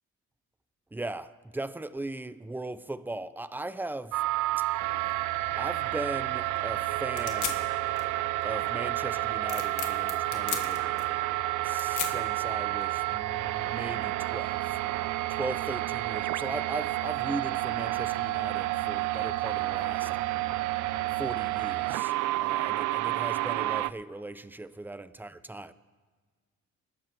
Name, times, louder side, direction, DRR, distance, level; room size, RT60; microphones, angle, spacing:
voice 1, 0.9-4.2 4.6-4.7 5.6-7.7 8.4-11.0 11.6-14.8 15.3-20.1 21.2-25.7, right 2 dB, 5° right, 0.6 m, -38 dB
sound 1, 4.1-23.9, right 17 dB, 75° right, 0.5 m, -30 dB
sound 2, 5.0-13.1, left 9 dB, 80° left, 1.8 m, -40 dB
27.0 x 12.0 x 3.0 m
cardioid pair, 90°, 30 cm